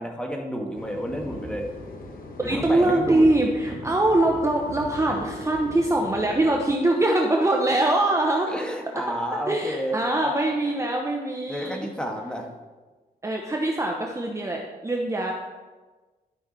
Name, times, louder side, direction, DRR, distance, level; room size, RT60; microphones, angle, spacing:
voice 1, 0.0-1.7 2.4-3.3 5.1-5.2 8.5-10.4 10.6-10.7 11.5-12.5, equal, 5° left, 1 dB, 1.4 m, -31 dB
sound 1, 0.7-6.7, left 2 dB, 65° left, 1.4 m, -40 dB
voice 2, 2.4-8.5 9.5-11.9 13.2-15.3, right 1 dB, 20° right, 1 dB, 0.9 m, -23 dB
12.0 x 5.9 x 4.1 m, 1.3 s
cardioid pair, 95°, 16 cm